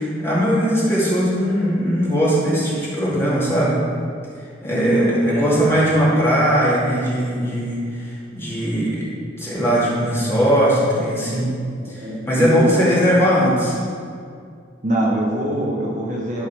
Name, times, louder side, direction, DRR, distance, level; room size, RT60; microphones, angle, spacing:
voice 1, 0.0-3.8 4.6-9.1 9.4-11.6 11.9-13.8, equal, 15° left, -8 dB, 2.2 m, -19 dB
voice 2, 4.6-5.6 11.6-12.9 14.8-16.5, right 1 dB, 40° right, -3 dB, 1.1 m, -23 dB
12.0 x 4.7 x 4.7 m, 2.3 s
head